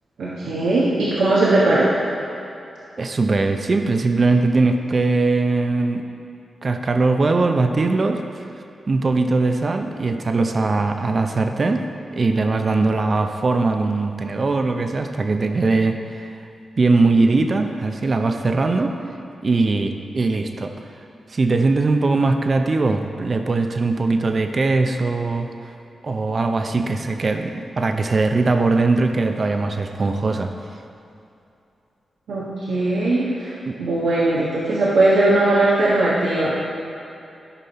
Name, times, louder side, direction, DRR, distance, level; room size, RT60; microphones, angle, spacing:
voice 1, 0.2-1.9 32.3-33.5 33.8-36.5, right 2 dB, 80° right, -8 dB, 1.4 m, -19 dB
voice 2, 3.0-6.1 6.6-8.2 8.9-16.3 16.8-19.0 19.4-20.7 21.3-25.7 26.0-30.5 33.7-33.8, right 3 dB, 50° right, 6 dB, 0.7 m, -20 dB
13.0 x 5.4 x 4.3 m, 2.7 s
supercardioid pair, 45°, 0 cm